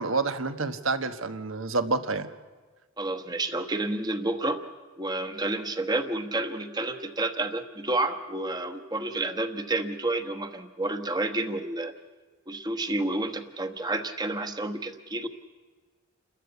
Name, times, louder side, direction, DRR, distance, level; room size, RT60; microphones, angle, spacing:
voice 1, 0.0-2.3, right 3 dB, 75° right, 10 dB, 1.3 m, -28 dB
voice 2, 3.0-4.6 5.0-11.9 12.5-15.3, right 2 dB, 20° right, 7 dB, 1.2 m, -30 dB
29.5 x 13.5 x 8.2 m, 1.4 s
head